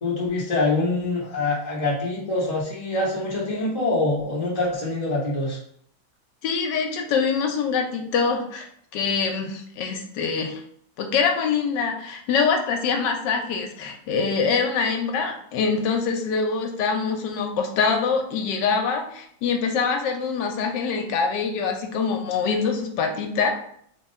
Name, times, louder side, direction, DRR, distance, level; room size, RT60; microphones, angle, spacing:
voice 1, 0.0-5.6, left 2 dB, 50° left, -5 dB, 0.4 m, -25 dB
voice 2, 6.4-8.7 8.9-10.6 11.0-23.5, left 5 dB, 70° left, 4 dB, 1.1 m, -24 dB
3.5 x 2.3 x 4.1 m, 0.65 s
omnidirectional pair, 2.2 m